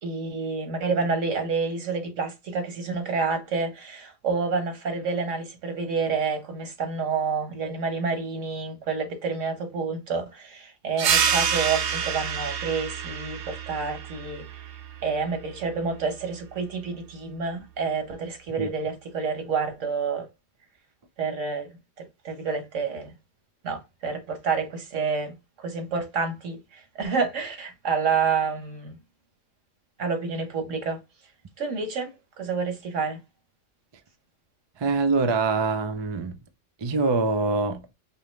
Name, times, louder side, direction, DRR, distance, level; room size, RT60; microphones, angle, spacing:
voice 1, 0.0-14.4 15.0-20.2 21.2-21.7 22.0-23.1 23.6-29.0 30.0-31.0 31.6-32.1 32.4-33.2, right 5 dB, 90° right, 1.4 m, -29 dB
sound 1, 11.0-16.1, right 7 dB, 70° right, 0.9 m, -28 dB
voice 2, 34.8-36.4 36.8-37.8, right 3 dB, 40° right, 0.4 m, -24 dB
5.3 x 2.0 x 3.1 m
omnidirectional pair, 1.3 m